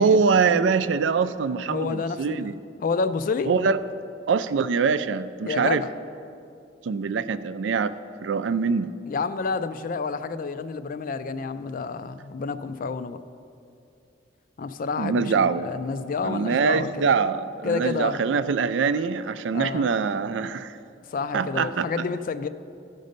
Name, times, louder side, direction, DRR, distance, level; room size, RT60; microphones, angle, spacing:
voice 1, 0.0-2.5 3.5-3.8 4.3-5.8 6.8-7.9 8.2-8.9 15.0-15.7 16.2-20.8 21.3-21.8, right 5 dB, 85° right, 13 dB, 0.4 m, -23 dB
voice 2, 1.7-2.5 2.8-3.5 5.5-5.9 9.1-13.2 14.6-17.1 17.6-18.2 19.5-19.9 21.1-22.5, left 4 dB, 50° left, 12 dB, 0.4 m, -29 dB
13.5 x 5.2 x 5.2 m, 2.5 s
head